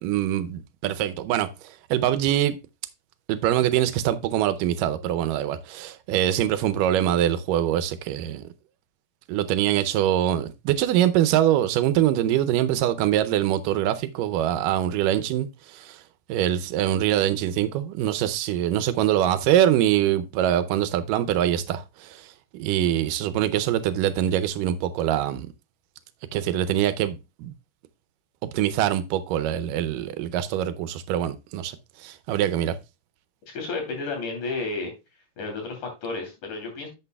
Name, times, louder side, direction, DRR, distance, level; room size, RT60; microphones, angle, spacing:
voice 1, 0.0-2.5 3.3-8.4 9.3-16.0 16.3-22.3 22.6-25.5 26.3-27.5 28.5-31.8 32.0-32.8, right 11 dB, 90° right, 2.3 m, -24 dB
voice 2, 33.5-34.9 35.4-36.9, left 3 dB, 70° left, 4.4 m, -32 dB
11.0 x 8.0 x 2.3 m
omnidirectional pair, 3.7 m